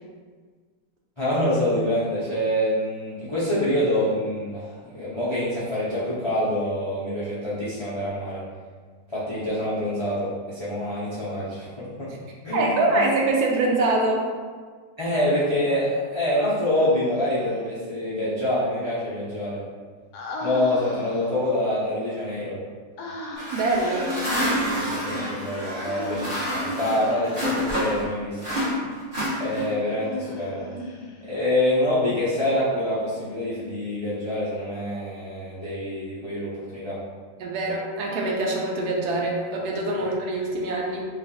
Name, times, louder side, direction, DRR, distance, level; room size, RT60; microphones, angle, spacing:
voice 1, 1.2-8.4 9.1-12.1 12.4-13.0 15.0-19.6 20.4-22.6 24.8-28.4 29.4-30.7 31.2-37.0, left 1 dB, 45° left, -10 dB, 0.3 m, -26 dB
voice 2, 12.5-14.2 23.5-24.1 37.4-41.1, right 2 dB, 70° right, -1 dB, 1.1 m, -24 dB
Human voice, 16.7-17.6 20.1-21.5 23.0-23.8 25.7-27.5 29.8-31.4, left 2 dB, 70° left, 1.0 m, -37 dB
sound 1, 23.3-28.1 28.4-29.9, equal, 25° right, 1.2 m, -28 dB
3.1 x 2.4 x 4.0 m, 1.5 s
omnidirectional pair, 1.9 m